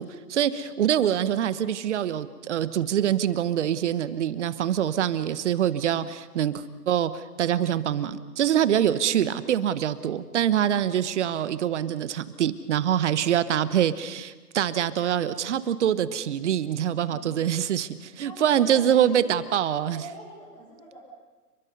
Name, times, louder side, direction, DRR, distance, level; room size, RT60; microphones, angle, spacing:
voice 1, 0.0-20.0, right 10 dB, 50° right, 14 dB, 1.3 m, -25 dB
voice 2, 18.2-19.2 19.8-21.0, right 1 dB, 5° left, -10 dB, 6.9 m, -44 dB
30.0 x 22.0 x 5.5 m, 1.3 s
hypercardioid pair, 140°, 46 cm